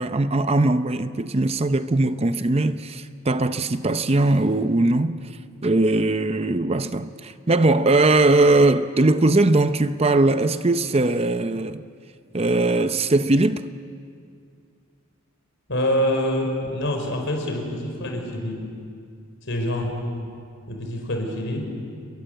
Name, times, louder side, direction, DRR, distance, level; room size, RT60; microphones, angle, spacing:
voice 1, 0.0-5.2 5.6-11.8 12.3-13.6, right 2 dB, 30° right, 0.6 m, -20 dB
voice 2, 15.7-18.6 19.5-20.0 20.7-21.8, left 1 dB, 60° left, 5.4 m, -26 dB
29.5 x 22.5 x 8.0 m
head